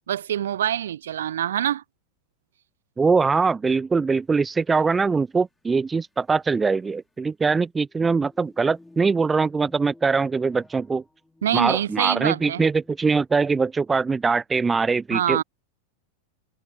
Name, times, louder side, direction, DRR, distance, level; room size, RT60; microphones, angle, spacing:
voice 1, 0.1-1.8 11.4-12.6 15.1-15.4, right 10 dB, 60° right, 0.6 m, -25 dB
voice 2, 3.0-11.0 11.5-15.4, right 4 dB, 15° right, 0.4 m, -22 dB
sound 1, 4.4-4.5 5.4-5.8 6.0-6.1 6.5-6.8 7.8-13.5, left 2 dB, 5° left, 5.2 m, -55 dB
figure-of-eight pair, 90°, 0 cm